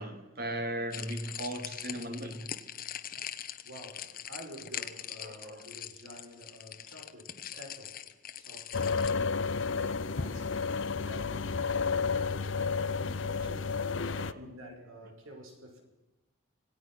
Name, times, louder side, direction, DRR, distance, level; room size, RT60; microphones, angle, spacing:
voice 1, 0.0-2.5 5.2-5.7 14.1-14.4, right 1 dB, 45° right, 2.8 m, -37 dB
sound 1, 0.9-9.1, left 10 dB, 45° left, 1.1 m, -42 dB
voice 2, 3.6-8.0 8.4-9.3 9.7-10.7 11.0-12.2 12.5-13.8 14.3-15.8, equal, 85° right, 5.5 m, -49 dB
sound 2, 8.7-14.3, left 5 dB, 65° left, 0.7 m, -31 dB
26.0 x 18.5 x 6.2 m
head